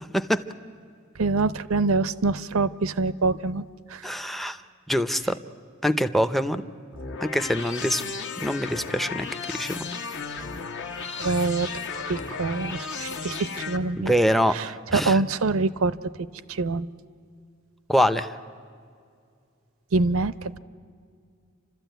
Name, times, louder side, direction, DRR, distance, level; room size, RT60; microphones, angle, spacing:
voice 1, 1.2-4.1 11.2-14.1 14.5-16.1 16.5-16.9 19.9-20.6, right 3 dB, 80° right, 16 dB, 0.7 m, -25 dB
voice 2, 4.0-4.6 4.9-5.4 5.8-6.6 7.2-8.0 8.4-9.3 9.5-9.9 14.0-14.5 14.9-15.2 17.9-18.3, equal, ahead, 12 dB, 0.6 m, -24 dB
sound 1, 6.9-13.8, left 5 dB, 60° left, 1.6 m, -34 dB
29.5 x 13.0 x 9.2 m, 2.3 s
head